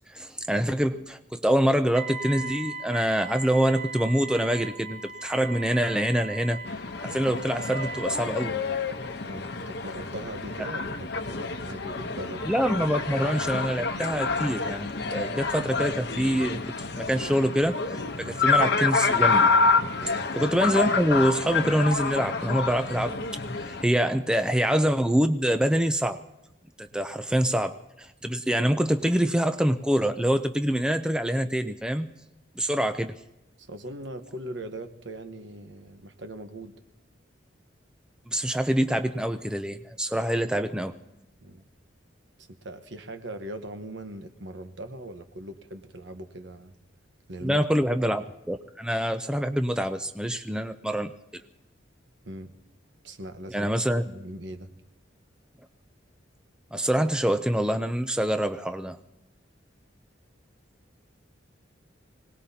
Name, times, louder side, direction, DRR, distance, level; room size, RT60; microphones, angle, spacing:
voice 1, 0.1-6.6 7.0-8.6 12.5-16.6 17.0-19.5 20.4-23.2 23.6-26.2 26.8-32.1 32.6-33.2 38.3-41.0 47.4-51.4 53.5-54.0 56.7-59.0, equal, 5° right, 8 dB, 0.5 m, -25 dB
Wind instrument woodwind instrument, 1.9-8.2, right 3 dB, 45° right, 2.8 m, -38 dB
sound 1, 6.6-23.8, left 4 dB, 60° left, 1.0 m, -28 dB
voice 2, 9.2-12.4 18.2-18.4 20.0-20.3 26.9-27.0 33.6-36.8 41.4-41.6 42.4-46.7 47.3-47.8 52.2-52.5 53.0-53.7 54.0-54.7, right 1 dB, 65° right, 8 dB, 1.2 m, -40 dB
25.5 x 18.5 x 2.8 m, 0.96 s
head